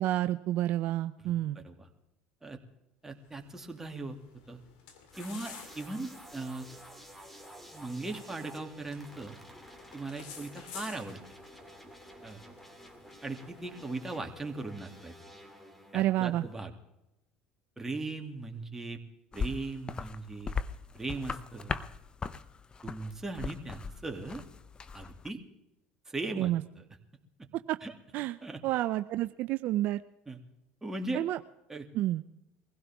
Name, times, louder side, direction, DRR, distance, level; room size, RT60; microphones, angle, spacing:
voice 1, 0.0-1.6 15.9-16.4 26.4-26.6 27.7-27.8 28.1-28.4 28.6-30.0 31.1-31.4 31.9-32.2, right 14 dB, 60° right, 11 dB, 0.5 m, -29 dB
voice 2, 3.0-4.6 5.2-6.7 7.7-9.4 9.9-11.2 12.2-12.4 13.2-15.1 15.9-16.7 17.8-19.0 19.3-20.5 20.9-21.8 22.8-24.4 24.9-25.4 26.1-26.5 26.8-26.9 27.8-27.9 28.4-28.6 30.3-30.4 30.8-31.2 31.7-31.9, right 2 dB, 15° right, 3 dB, 2.4 m, -38 dB
sound 1, 3.1-14.9, left 7 dB, 80° left, 2.4 m, -53 dB
sound 2, 5.1-16.5, equal, 5° left, 2.6 m, -51 dB
sound 3, 19.3-25.3, left 5 dB, 25° left, 0.7 m, -38 dB
22.5 x 16.0 x 3.6 m, 0.89 s
supercardioid pair, 85°, 3 cm